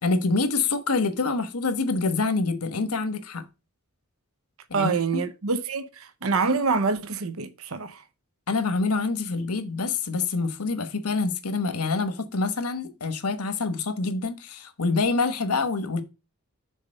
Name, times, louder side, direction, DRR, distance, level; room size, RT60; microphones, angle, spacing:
voice 1, 0.0-3.4 4.7-5.2 8.5-16.0, left 3 dB, 90° left, 1.2 m, -26 dB
voice 2, 4.7-8.0, right 4 dB, 70° right, 0.8 m, -26 dB
6.6 x 4.2 x 6.4 m
head